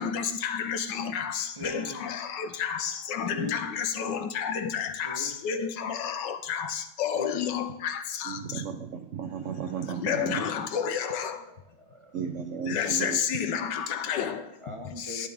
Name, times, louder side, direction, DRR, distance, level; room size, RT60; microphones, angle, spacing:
voice 1, 0.0-8.6 9.9-11.5 12.6-14.5 15.0-15.3, left 8 dB, 70° left, 8 dB, 1.4 m, -31 dB
voice 2, 1.5-2.2 3.3-3.7 5.0-5.5 7.2-7.6 11.2-12.2 14.6-15.3, equal, 30° right, 1 dB, 0.5 m, -41 dB
sound 1, 1.6-6.0 6.3-6.4, left 2 dB, 10° right, 3.1 m, -53 dB
voice 3, 8.3-10.4 12.1-13.2, right 7 dB, 75° right, 6 dB, 0.6 m, -34 dB
12.5 x 10.0 x 3.5 m, 0.83 s
omnidirectional pair, 2.1 m